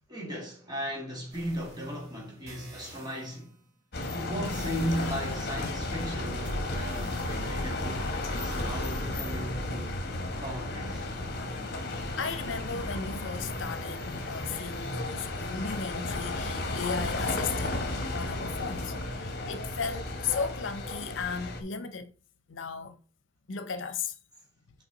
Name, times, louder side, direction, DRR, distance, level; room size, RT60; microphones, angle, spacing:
voice 1, 0.1-3.5 4.1-9.6 10.4-11.1 14.2-14.3, equal, 20° right, 2.1 m, -36 dB
sound 1, 1.3-3.6 4.4-6.0 6.4-8.7, right 1 dB, 55° right, 2.8 m, -52 dB
sound 2, 3.9-21.6, left 2 dB, 55° left, 1.3 m, -33 dB
voice 2, 12.1-19.0 19.2-22.1 22.5-23.0 23.5-24.2, left 5 dB, 75° left, 0.7 m, -35 dB
5.8 x 4.8 x 4.0 m
head